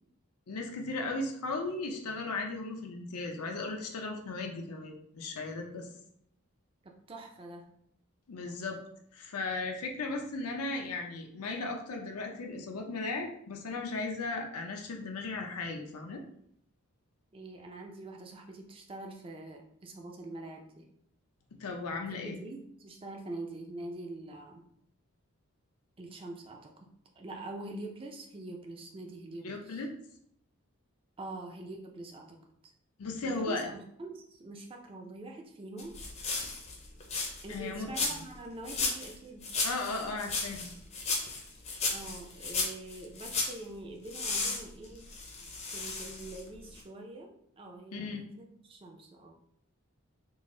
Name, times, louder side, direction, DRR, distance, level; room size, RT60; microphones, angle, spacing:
voice 1, 0.5-5.9 8.3-8.8 9.1-16.2 21.6-22.4 29.4-29.9 33.0-33.7 37.5-38.2 39.6-40.7 47.9-48.2, left 3 dB, 85° left, 2 dB, 0.5 m, -36 dB
voice 2, 6.8-7.7 17.3-20.9 22.2-24.6 26.0-26.7 27.2-29.9 31.2-32.7 33.2-35.9 37.4-39.5 41.9-45.1 45.7-49.4, right 2 dB, 25° right, 2 dB, 0.4 m, -44 dB
sound 1, 35.8-37.6 37.9-38.4 38.7-39.2 39.4-43.6 44.1-46.5 46.8-46.9, left 3 dB, 30° left, 0.5 m, -34 dB
3.7 x 2.0 x 3.7 m, 0.71 s
head